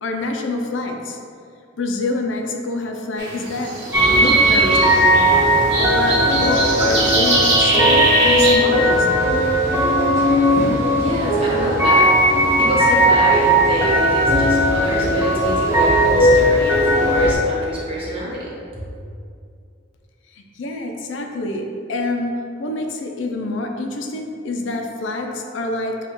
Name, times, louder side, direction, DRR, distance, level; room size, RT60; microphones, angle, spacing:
voice 1, 0.0-1.2 1.8-3.7 4.1-5.3 5.8-9.4 20.4-26.0, left 2 dB, 70° left, 3 dB, 0.5 m, -26 dB
sound 1, 3.2-8.5, right 2 dB, 60° right, 0.8 m, -22 dB
sound 2, 3.9-17.3, equal, 15° right, 0.7 m, -17 dB
voice 2, 11.0-12.1 12.6-18.5, equal, 30° right, -7 dB, 1.1 m, -26 dB
7.1 x 2.4 x 3.0 m, 2.4 s
head